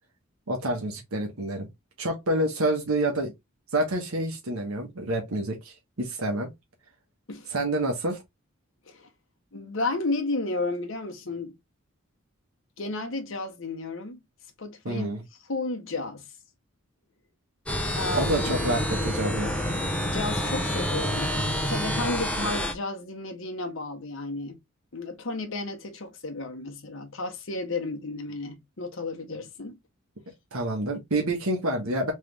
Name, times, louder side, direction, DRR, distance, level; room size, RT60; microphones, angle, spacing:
voice 1, 0.5-1.7 2.0-3.3 3.7-6.5 7.5-8.2 14.8-15.2 18.1-19.5 30.5-32.1, right 1 dB, 85° right, 1.2 m, -28 dB
voice 2, 9.5-11.5 12.8-14.2 14.6-15.1 15.5-16.3 18.0-18.5 20.0-24.6 24.9-29.8, left 2 dB, 65° left, 1.0 m, -33 dB
sound 1, 17.7-22.7, equal, 5° left, 0.6 m, -28 dB
3.6 x 3.3 x 3.3 m
head